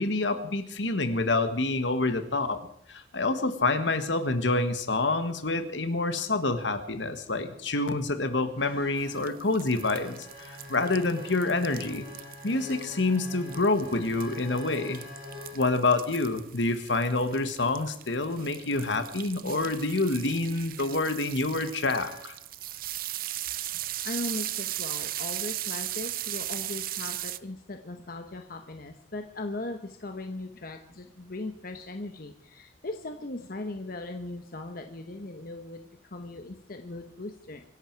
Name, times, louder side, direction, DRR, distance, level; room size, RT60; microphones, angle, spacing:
voice 1, 0.0-2.6 2.9-12.1 12.4-15.0 15.5-22.3, left 2 dB, 70° left, 9 dB, 1.6 m, -27 dB
sound 1, 8.6-15.7 20.0-20.3 21.7-22.3 23.7-23.9 25.5-25.6, left 3 dB, 35° right, 7.9 m, -44 dB
sound 2, 9.0-27.4, right 14 dB, 50° right, 0.6 m, -37 dB
voice 2, 24.0-37.6, left 2 dB, 50° left, 5 dB, 1.1 m, -38 dB
25.0 x 11.0 x 4.7 m, 0.69 s
head